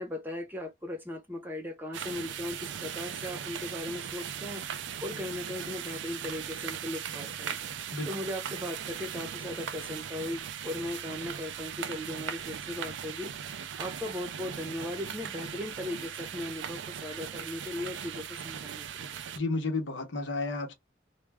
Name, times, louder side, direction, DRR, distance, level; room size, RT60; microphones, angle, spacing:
voice 1, 0.0-4.6 5.0-7.6 8.1-13.3 13.8-19.2, left 1 dB, 10° right, 0.6 m, -38 dB
sound 1, 1.9-19.4, right 8 dB, 80° right, 0.4 m, -39 dB
voice 2, 19.3-20.7, left 3 dB, 80° left, 0.8 m, -32 dB
2.2 x 2.2 x 3.3 m
head